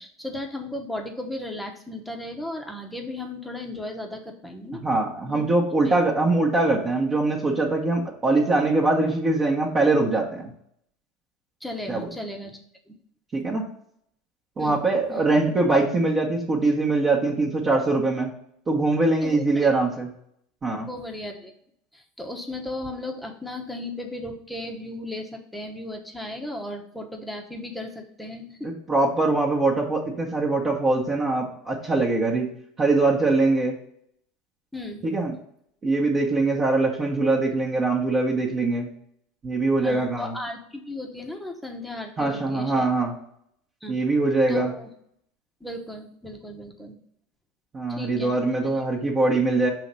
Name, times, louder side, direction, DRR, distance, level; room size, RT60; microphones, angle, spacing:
voice 1, 0.0-4.8 5.3-5.4 5.8-6.0 11.6-12.6 12.9-13.0 14.6-14.8 15.1-15.2 19.2-19.7 20.9-21.5 21.9-28.7 34.7-35.0 39.8-42.9 43.8-44.0 44.5-44.9 45.6-47.0 47.9-48.3 48.7-48.8, left 1 dB, 5° left, 2 dB, 1.0 m, -35 dB
voice 2, 4.8-10.5 11.9-12.1 13.3-13.7 14.6-18.3 18.7-20.1 20.6-20.9 28.6-32.5 32.8-33.7 35.0-35.3 35.8-38.9 39.4-40.3 42.2-43.1 43.9-44.7 47.7-49.7, right 2 dB, 30° right, -4 dB, 1.2 m, -22 dB
5.5 x 3.2 x 5.4 m, 0.69 s
hypercardioid pair, 100°, 0 cm